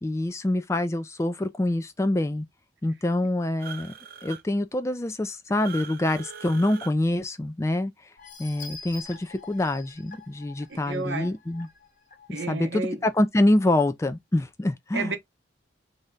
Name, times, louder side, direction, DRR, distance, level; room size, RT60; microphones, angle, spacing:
voice 1, 0.0-2.5 2.8-3.9 4.2-7.9 8.4-11.7 12.5-15.1, left 1 dB, 15° left, 0.3 m, -26 dB
sound 1, 3.6-4.4 5.6-6.9, right 6 dB, 50° right, 0.5 m, -41 dB
sound 2, 8.2-12.6 13.1-13.2 13.6-13.7, left 4 dB, 45° left, 0.8 m, -46 dB
voice 2, 10.7-11.3 12.3-13.1 14.9-15.2, right 4 dB, 70° right, 0.9 m, -31 dB
3.2 x 2.7 x 3.6 m
head